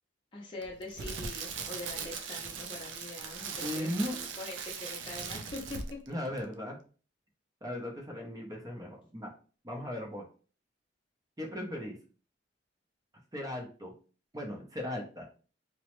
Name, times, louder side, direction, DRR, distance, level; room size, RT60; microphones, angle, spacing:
voice 1, 0.3-4.0 4.4-6.0, left 2 dB, 30° left, -3 dB, 0.6 m, -43 dB
Crackle, 0.6-6.1 6.4-6.6, right 5 dB, 90° right, 0.4 m, -40 dB
voice 2, 3.6-4.2 6.1-6.8 7.6-9.3 9.6-10.2 11.4-12.0 13.3-13.9 14.3-15.3, left 1 dB, 20° right, 0 dB, 0.6 m, -37 dB
2.9 x 2.0 x 3.0 m, 0.38 s
head